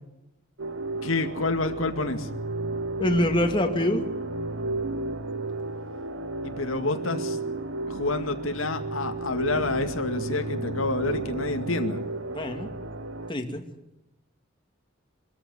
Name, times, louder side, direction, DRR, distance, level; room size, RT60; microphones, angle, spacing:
sound 1, 0.6-13.3, right 2 dB, 75° right, 1.4 m, -33 dB
voice 1, 1.0-2.3 6.4-7.4 7.9-12.0, left 2 dB, 85° left, 6 dB, 2.1 m, -28 dB
voice 2, 3.0-4.0 12.3-12.7 13.3-13.6, left 1 dB, 25° left, 4 dB, 2.3 m, -25 dB
23.5 x 14.5 x 9.6 m, 0.89 s
head